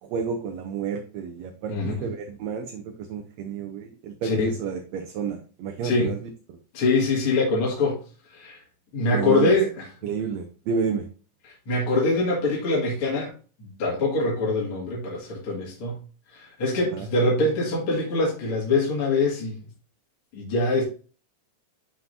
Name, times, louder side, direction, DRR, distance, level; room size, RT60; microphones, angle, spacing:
voice 1, 0.0-1.7 2.0-6.2 6.5-6.6 9.1-9.5 10.0-11.1 16.9-17.1, right 6 dB, 75° right, 3 dB, 1.8 m, -30 dB
voice 2, 6.7-8.0 8.3-8.6 8.9-9.8 11.7-13.3 13.6-16.0 16.3-19.6 20.3-20.8, left 2 dB, 50° left, -4 dB, 2.8 m, -24 dB
11.0 x 3.8 x 2.7 m, 0.37 s
omnidirectional pair, 3.4 m